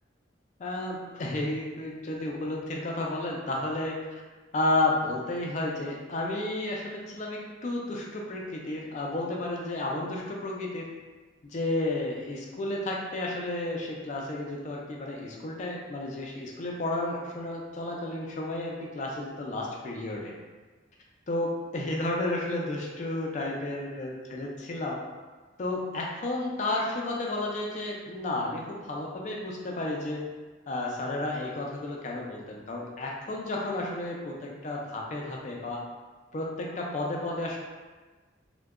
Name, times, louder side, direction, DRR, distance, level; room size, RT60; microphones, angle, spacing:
voice 1, 0.6-4.0 4.5-10.9 11.4-20.3 21.3-25.0 25.6-30.2 30.7-35.8 36.3-37.6, left 2 dB, 40° left, -2 dB, 0.4 m, -32 dB
2.6 x 2.1 x 2.3 m, 1.3 s
head